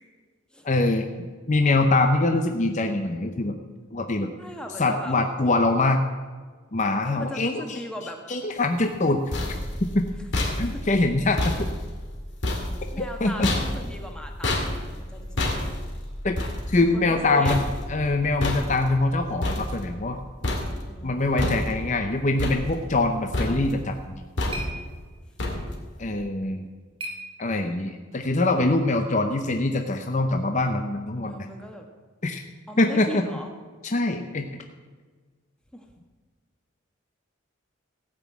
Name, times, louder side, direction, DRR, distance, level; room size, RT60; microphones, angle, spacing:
voice 1, 0.6-1.1 1.5-3.6 3.9-4.3 4.8-6.0 6.7-7.8 8.3-9.2 9.8-10.0 10.6-11.7 13.0-13.5 16.2-16.3 16.7-17.6 17.9-20.2 21.0-24.2 26.0-26.6 27.4-31.5 32.2-32.4 32.8-33.2 33.8-34.6, left 2 dB, 35° left, 5 dB, 0.7 m, -23 dB
voice 2, 4.4-5.2 7.0-8.2 10.7-10.8 12.9-15.5 16.8-17.5 20.8-21.4 31.2-31.8 32.7-33.5 35.7-35.9, equal, 5° left, 3 dB, 1.4 m, -38 dB
sound 1, 8.9-20.2 20.4-21.0 21.4-22.0 22.4-23.1 23.3-23.9 24.4-24.9 25.4-25.9, left 1 dB, 60° left, 2.3 m, -30 dB
sound 2, 23.8-28.0, right 1 dB, 25° right, 1.5 m, -42 dB
16.0 x 6.1 x 8.4 m, 1.5 s
head